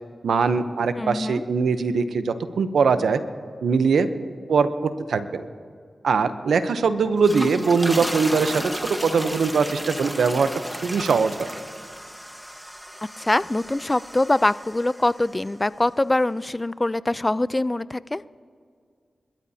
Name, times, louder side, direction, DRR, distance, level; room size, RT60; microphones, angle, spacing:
voice 1, 0.2-3.2 3.6-4.1 4.5-4.7 5.1-5.5 6.0-10.5 10.8-11.5, right 5 dB, 85° right, 11 dB, 0.8 m, -21 dB
voice 2, 0.9-1.4 13.2-18.2, left 2 dB, 25° left, 17 dB, 0.4 m, -23 dB
sound 1, 7.1-15.4, equal, 5° right, 1.3 m, -34 dB
27.5 x 13.5 x 2.8 m, 2.1 s
cardioid pair, 45°, 0 cm